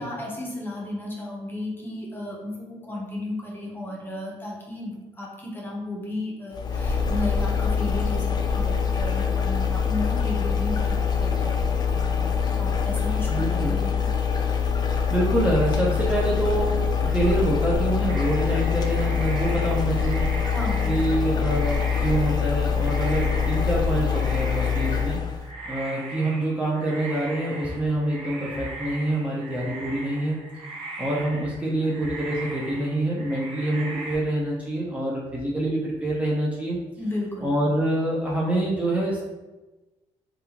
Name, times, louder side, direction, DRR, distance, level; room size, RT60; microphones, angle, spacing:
voice 1, 0.0-14.1 20.4-20.9 37.0-37.6, left 1 dB, 20° left, -2 dB, 0.9 m, -34 dB
sound 1, 6.5-25.5, left 6 dB, 40° left, 0.4 m, -24 dB
voice 2, 13.3-13.8 15.1-20.3 20.9-25.2 25.7-30.4 31.0-36.8 37.4-39.2, right 1 dB, 10° right, -4 dB, 0.6 m, -26 dB
sound 2, 18.1-34.2, right 2 dB, 55° right, 0.8 m, -39 dB
3.4 x 2.3 x 2.9 m, 1.1 s
cardioid pair, 90°, 11 cm